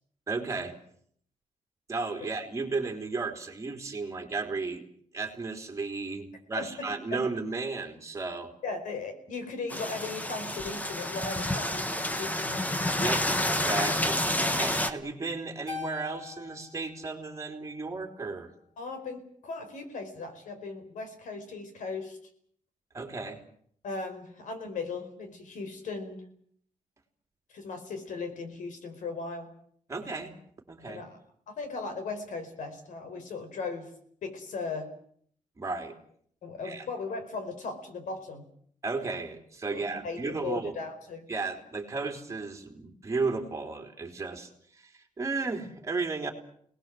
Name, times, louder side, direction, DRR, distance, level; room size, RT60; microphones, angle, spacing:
voice 1, 0.3-0.8 1.9-4.8 5.1-8.5 13.0-14.2 14.6-18.5 22.9-23.4 29.9-30.3 30.7-31.0 35.6-36.0 36.6-36.9 38.8-40.8 41.3-46.3, right 3 dB, 25° right, 3 dB, 3.4 m, -34 dB
voice 2, 6.6-7.2 8.6-12.6 18.8-22.2 23.8-26.2 27.5-29.5 30.9-31.2 31.5-33.9 34.2-34.9 36.4-38.5 39.7-41.3, left 4 dB, 90° left, 7 dB, 4.9 m, -37 dB
sound 1, 9.7-14.9, left 1 dB, 10° left, 1.5 m, -29 dB
Keyboard (musical), 15.7-18.2, left 7 dB, 35° left, 4.8 m, -44 dB
28.0 x 19.5 x 7.6 m, 0.64 s
wide cardioid pair, 160°, 13 cm